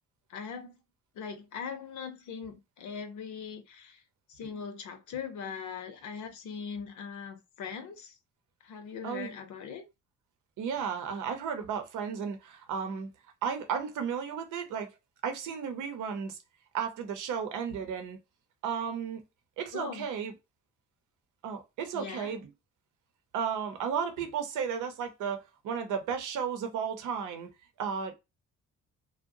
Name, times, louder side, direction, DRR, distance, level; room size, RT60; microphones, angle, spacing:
voice 1, 0.3-0.7 1.1-4.0 4.3-8.2 8.6-9.9 19.7-20.1 21.9-22.3, left 6 dB, 75° left, 0.7 m, -40 dB
voice 2, 10.6-13.1 13.4-14.9 15.2-16.4 16.7-18.2 18.6-19.2 19.6-20.3 21.4-22.5 23.3-27.5 27.8-28.1, right 7 dB, 80° right, 0.8 m, -34 dB
2.8 x 2.1 x 2.6 m
cardioid pair, 90°, 30 cm